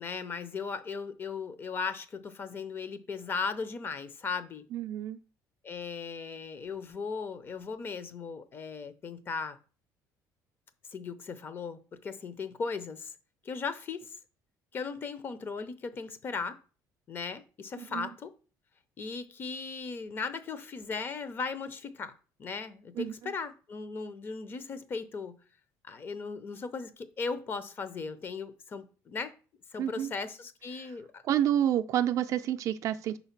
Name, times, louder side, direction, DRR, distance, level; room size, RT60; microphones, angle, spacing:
voice 1, 0.0-4.6 5.6-9.6 10.9-13.1 13.4-14.2 14.7-16.6 17.1-18.3 19.0-22.1 22.4-25.3 25.8-29.3 29.7-31.2, left 5 dB, 30° left, 0.6 m, -37 dB
voice 2, 4.7-5.2 17.8-18.1 23.0-23.3 29.8-30.1 30.8-30.9 31.2-33.2, right 11 dB, 50° right, 0.4 m, -29 dB
5.2 x 4.0 x 5.7 m
cardioid pair, 165°, 7 cm